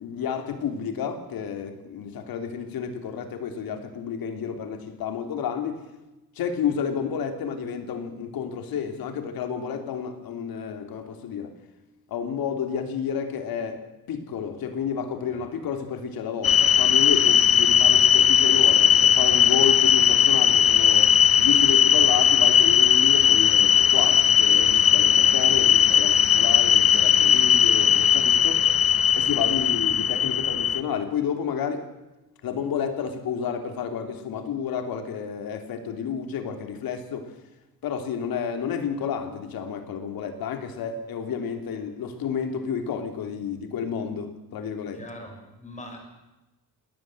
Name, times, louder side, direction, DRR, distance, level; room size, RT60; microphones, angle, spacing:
voice 1, 0.0-5.8 6.3-11.5 12.1-13.8 14.1-28.6 29.1-31.9 32.4-37.3 37.8-45.0, left 7 dB, 75° left, 7 dB, 3.2 m, -30 dB
sound 1, 16.4-30.8, left 8 dB, 40° left, 0.8 m, -18 dB
voice 2, 28.5-29.0 44.9-46.1, left 1 dB, 20° left, 3 dB, 5.5 m, -43 dB
21.0 x 18.0 x 7.9 m, 1.0 s
cardioid pair, 165°, 36 cm